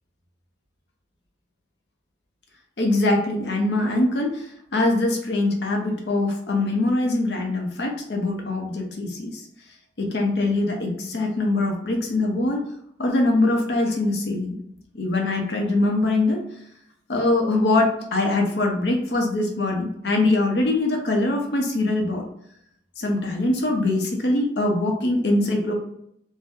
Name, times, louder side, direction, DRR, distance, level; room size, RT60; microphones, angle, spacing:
voice 1, 2.8-4.5 4.7-9.4 10.0-12.6 13.0-14.6 14.9-16.4 17.1-22.3 23.0-25.7, left 2 dB, 70° left, 1 dB, 0.7 m, -23 dB
2.7 x 2.1 x 3.4 m, 0.74 s
head